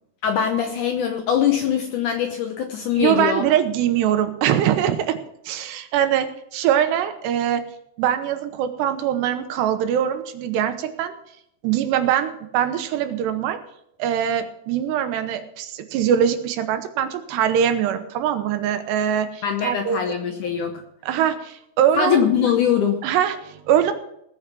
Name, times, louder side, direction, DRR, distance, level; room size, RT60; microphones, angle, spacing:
voice 1, 0.2-3.4 19.4-20.7 21.9-23.0, left 8 dB, 70° left, 4 dB, 1.9 m, -22 dB
voice 2, 3.0-5.2 5.5-7.6 8.0-11.1 11.6-13.6 14.0-20.0 21.0-22.2 23.0-23.9, right 10 dB, 80° right, 8 dB, 3.1 m, -22 dB
19.0 x 6.5 x 5.9 m, 0.75 s
omnidirectional pair, 4.8 m